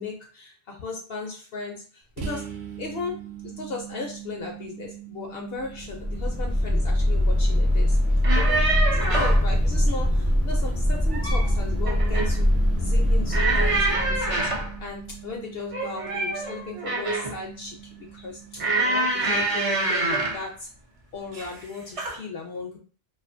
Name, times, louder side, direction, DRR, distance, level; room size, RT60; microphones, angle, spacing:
voice 1, 0.0-2.4 2.8-3.2 3.6-8.0 8.3-14.5 14.8-20.7 21.1-22.8, left 4 dB, 65° left, 1 dB, 0.6 m, -36 dB
sound 1, 2.2-19.7, right 10 dB, 65° right, 0.7 m, -42 dB
sound 2, 5.7-15.1, left 1 dB, 20° left, 0.4 m, -22 dB
sound 3, 8.1-9.5 10.9-11.5 11.9-12.4 13.3-14.7 15.7-17.4 18.6-20.4 21.3-21.6 22.0-22.2, right 2 dB, 50° right, 0.4 m, -26 dB
2.5 x 2.4 x 2.5 m, 0.40 s
omnidirectional pair, 1.3 m